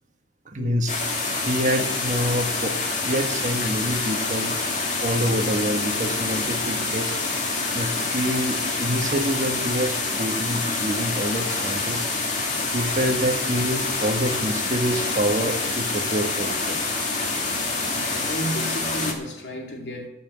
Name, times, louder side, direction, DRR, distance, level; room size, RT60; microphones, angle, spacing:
voice 1, 0.5-1.0 1.4-2.8 3.1-4.6 5.0-7.2 7.7-12.1 12.7-16.8, equal, 45° right, 1.5 m, -26 dB
sound 1, 0.9-19.1, left 3 dB, 45° left, 2.3 m, -26 dB
voice 2, 18.1-20.1, equal, 90° left, 2.2 m, -32 dB
14.5 x 5.8 x 8.5 m
head